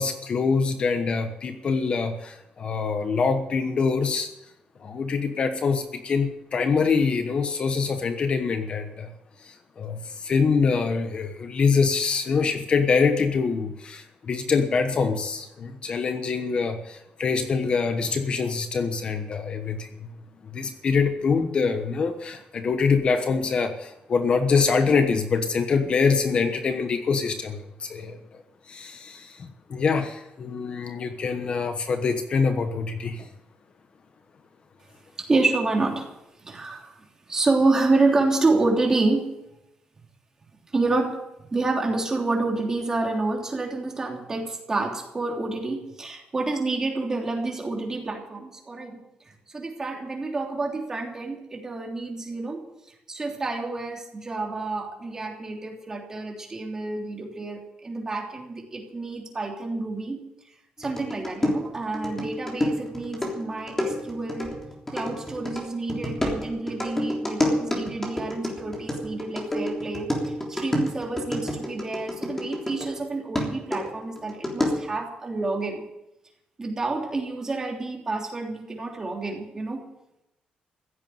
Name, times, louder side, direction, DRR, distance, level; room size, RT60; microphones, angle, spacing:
voice 1, 0.0-4.3 4.8-9.1 9.4-20.1 20.5-33.3, left 5 dB, 40° left, 7 dB, 1.1 m, -25 dB
voice 2, 35.2-36.1 36.4-39.3 40.7-49.0 49.2-52.6 53.1-60.2 60.8-64.5 64.9-75.8 76.6-79.8, right 3 dB, 20° right, 0 dB, 3.2 m, -28 dB
sound 1, 60.8-73.0 73.3-75.0, left 1 dB, 10° left, 3.4 m, -29 dB
16.0 x 8.2 x 9.4 m, 0.89 s
cardioid pair, 155°, 3 cm